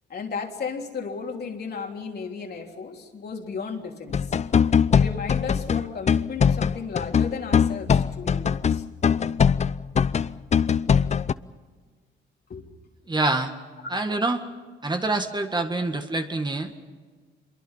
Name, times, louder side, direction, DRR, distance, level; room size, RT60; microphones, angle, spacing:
voice 1, 0.1-4.4 4.9-8.8 12.5-12.7, left 5 dB, 55° left, 1 dB, 3.4 m, -34 dB
sound 1, 4.1-11.3, left 7 dB, 35° left, 0.6 m, -21 dB
voice 2, 13.1-13.5 13.9-14.4 14.8-16.8, right 2 dB, 20° right, 6 dB, 1.8 m, -26 dB
26.0 x 23.0 x 5.7 m, 1.5 s
cardioid pair, 90°, 20 cm